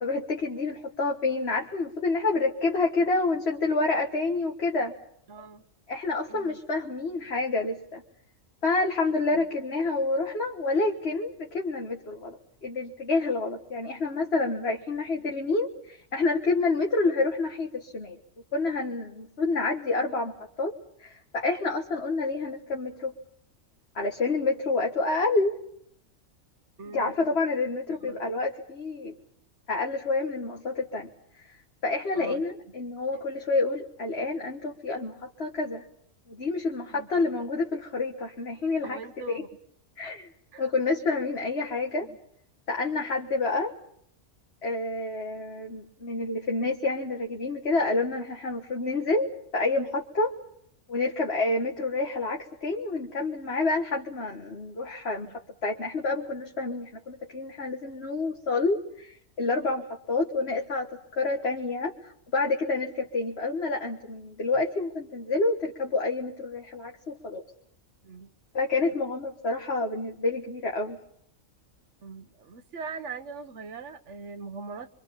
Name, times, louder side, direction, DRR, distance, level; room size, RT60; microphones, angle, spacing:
voice 1, 0.0-4.9 5.9-8.0 8.6-18.2 18.5-20.7 21.0-23.1 24.0-25.5 26.9-29.2 29.7-31.1 31.4-31.6 31.8-35.8 36.3-39.4 40.0-40.3 40.6-42.1 42.7-43.7 44.6-50.3 50.9-55.3 55.6-67.4 68.5-71.0, left 3 dB, 50° left, 1 dB, 1.8 m, -28 dB
voice 2, 5.3-5.6 6.3-6.6 9.3-9.5 14.7-14.8 26.8-27.1 28.0-28.2 32.1-32.4 36.9-37.1 38.8-39.5 40.5-40.7 42.0-42.2 55.2-55.3 68.0-68.3 72.0-74.9, right 4 dB, 60° right, 10 dB, 1.4 m, -41 dB
25.5 x 25.0 x 5.6 m, 0.70 s
omnidirectional pair, 1.4 m